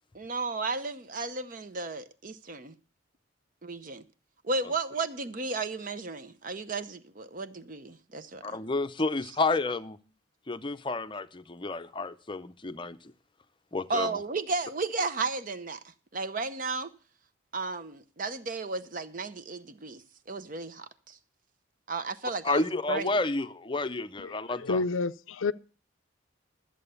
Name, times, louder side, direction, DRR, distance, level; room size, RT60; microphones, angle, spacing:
voice 1, 0.1-2.7 3.6-4.0 4.4-8.6 13.9-15.8 16.1-16.9 17.5-20.0 20.3-21.2 21.9-23.1, right 3 dB, 40° right, 0.7 m, -34 dB
voice 2, 8.4-10.0 10.5-13.0 13.7-14.1 22.4-24.8, left 3 dB, 25° left, 0.6 m, -30 dB
voice 3, 24.2-25.5, left 3 dB, 80° left, 0.5 m, -30 dB
13.0 x 7.7 x 6.8 m
head